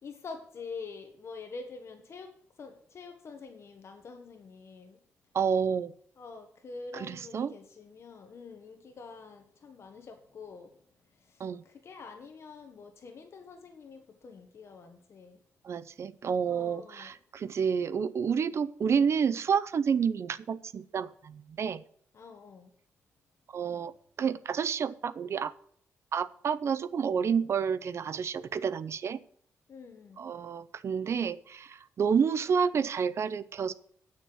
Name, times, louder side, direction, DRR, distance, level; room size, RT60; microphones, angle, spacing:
voice 1, 0.0-5.0 6.2-10.8 11.1-15.4 16.5-17.1 18.3-18.6 22.1-22.7 29.7-30.2, left 4 dB, 55° left, 5 dB, 1.4 m, -46 dB
voice 2, 5.3-5.9 6.9-7.5 11.4-11.6 15.6-21.8 23.5-23.9 24.2-25.5 26.1-29.2 30.2-33.7, right 6 dB, 55° right, 15 dB, 0.6 m, -29 dB
9.5 x 6.5 x 7.8 m, 0.62 s
cardioid pair, 100°, 6 cm